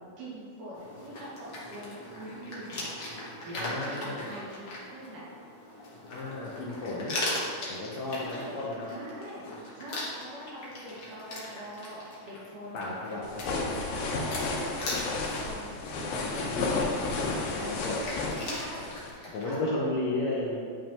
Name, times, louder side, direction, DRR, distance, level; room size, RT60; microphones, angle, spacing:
voice 1, 0.2-2.9 3.4-3.7 4.0-5.2 8.1-8.6 8.9-12.8 13.1-13.2 13.9-16.5 16.7-16.8 18.1-19.9, equal, 70° right, -9 dB, 3.4 m, -44 dB
sound 1, 0.7-19.6, left 1 dB, 55° left, 1.3 m, -40 dB
voice 2, 3.6-4.3 6.1-7.2 7.7-8.9 12.7-14.0 16.2-16.7 17.0-18.0 19.3-20.6, left 2 dB, 70° left, -5 dB, 1.7 m, -34 dB
sound 2, 13.2-19.1, left 3 dB, 90° left, 2.6 m, -32 dB
10.0 x 5.3 x 2.9 m, 2.2 s
omnidirectional pair, 3.9 m